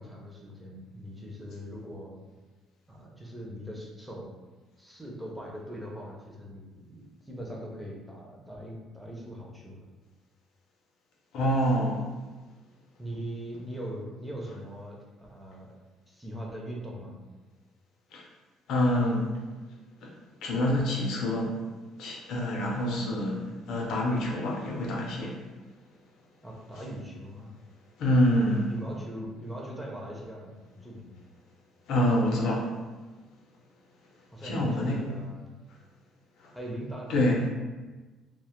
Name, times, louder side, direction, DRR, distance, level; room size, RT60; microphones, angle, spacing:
voice 1, 0.0-2.2 2.9-4.4 4.8-9.9 13.0-15.7 16.1-17.2 26.4-27.5 28.5-31.2 34.3-35.6 36.5-37.5, equal, 5° right, -3 dB, 0.4 m, -41 dB
voice 2, 11.3-12.0 18.1-18.2 18.7-19.3 20.0-20.1 20.4-21.5 22.0-25.4 28.0-28.7 31.9-32.7 34.4-35.0 37.1-37.4, left 1 dB, 60° left, -1 dB, 0.5 m, -26 dB
2.1 x 2.0 x 2.9 m, 1.2 s
cardioid pair, 155°, 0 cm